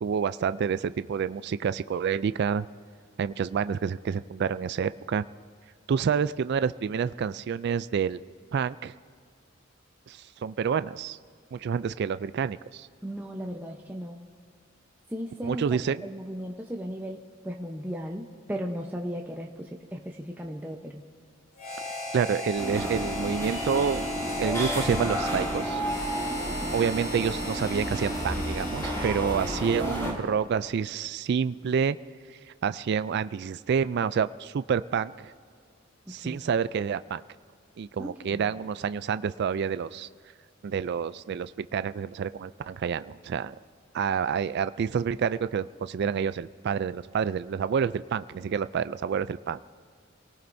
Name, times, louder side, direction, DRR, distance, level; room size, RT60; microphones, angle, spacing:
voice 1, 0.0-2.6 3.2-5.3 5.9-8.2 8.5-8.9 10.1-11.2 11.5-12.9 15.4-16.1 21.9-24.0 24.4-25.8 26.7-32.0 32.6-35.3 36.1-37.2 37.8-40.1 40.6-43.6 43.9-49.6, right 6 dB, 55° right, 14 dB, 0.3 m, -28 dB
voice 2, 13.0-14.2 15.1-21.1 26.6-26.9 28.9-29.1 29.5-29.9 36.1-36.4 38.0-38.6, equal, 10° right, -1 dB, 0.8 m, -37 dB
Harmonica, 21.6-30.2, left 1 dB, 50° left, 3.9 m, -37 dB
sound 1, 22.5-30.1, right 1 dB, 15° left, 5.2 m, -32 dB
28.5 x 18.5 x 2.7 m, 2.2 s
head